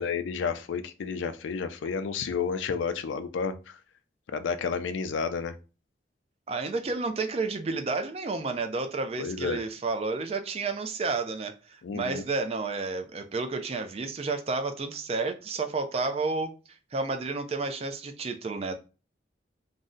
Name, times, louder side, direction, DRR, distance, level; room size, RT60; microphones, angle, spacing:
voice 1, 0.0-3.8 4.3-5.6 9.2-9.6 11.8-12.2, left 5 dB, 85° left, 0.4 m, -31 dB
voice 2, 6.5-18.8, right 3 dB, 35° right, 0.3 m, -31 dB
2.6 x 2.1 x 3.6 m
head